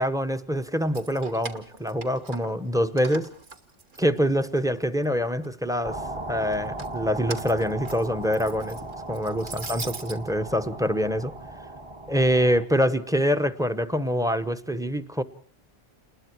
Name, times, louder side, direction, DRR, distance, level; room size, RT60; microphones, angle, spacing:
voice 1, 0.0-3.3 4.0-6.0 6.3-8.8 9.1-11.3 12.1-15.2, equal, 5° right, 9 dB, 0.9 m, -25 dB
Keys jangling, 0.8-2.7 3.0-4.6 5.0-5.8 6.5-10.2, right 3 dB, 50° right, 1.6 m, -41 dB
sound 1, 5.8-12.7, right 2 dB, 30° right, 1.3 m, -37 dB
28.5 x 20.5 x 4.6 m, 0.42 s
omnidirectional pair, 1.1 m